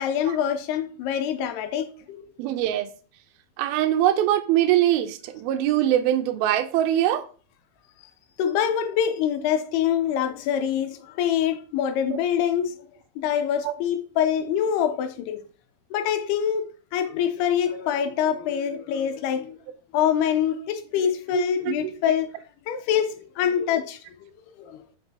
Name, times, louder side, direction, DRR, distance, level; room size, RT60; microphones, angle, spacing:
voice 1, 0.0-2.2 8.4-12.8 13.2-15.4 15.9-19.6 19.9-22.3 22.7-24.0 24.6-24.8, left 9 dB, 80° left, 2.6 m, -25 dB
voice 2, 2.4-2.9 3.6-7.3 12.1-12.2 13.6-13.7 21.3-21.9, right 12 dB, 80° right, 2.4 m, -23 dB
8.0 x 5.9 x 2.8 m
omnidirectional pair, 4.8 m